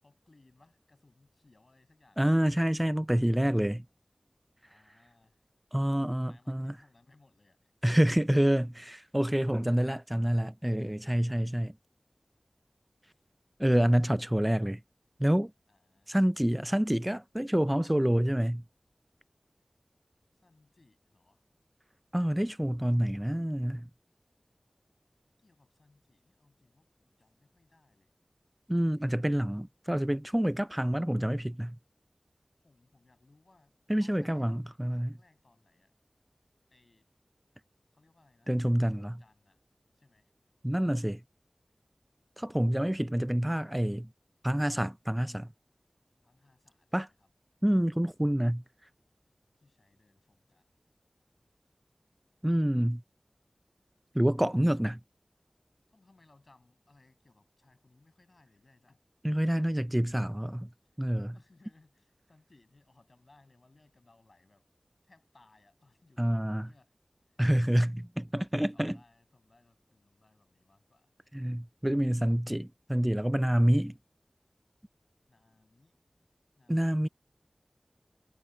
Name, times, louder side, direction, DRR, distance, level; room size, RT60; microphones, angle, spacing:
voice 1, 0.0-2.3 2.8-3.0 4.6-5.4 5.7-7.7 15.7-16.2 20.3-21.5 25.4-28.1 29.3-29.4 32.6-35.9 36.7-37.1 37.9-39.6 39.9-40.3 46.2-47.3 49.6-50.7 54.8-55.0 55.9-59.0 61.3-64.7 65.0-67.0 68.7-71.1 75.3-76.0 76.6-77.1, left 2 dB, 65° left, 7.0 m, -65 dB
voice 2, 2.2-3.8 5.7-6.7 7.8-11.7 13.6-14.8 15.2-15.5 16.1-18.6 22.1-23.9 28.7-31.8 33.9-35.1 38.5-39.1 40.6-41.2 42.4-44.1 44.4-45.5 46.9-47.1 47.6-48.6 52.4-53.0 54.1-55.0 59.2-60.7 61.0-61.3 66.2-66.7 67.4-69.0 71.3-73.9 76.7-77.1, equal, 10° right, 0.4 m, -27 dB
wide cardioid pair, 50°, 0 cm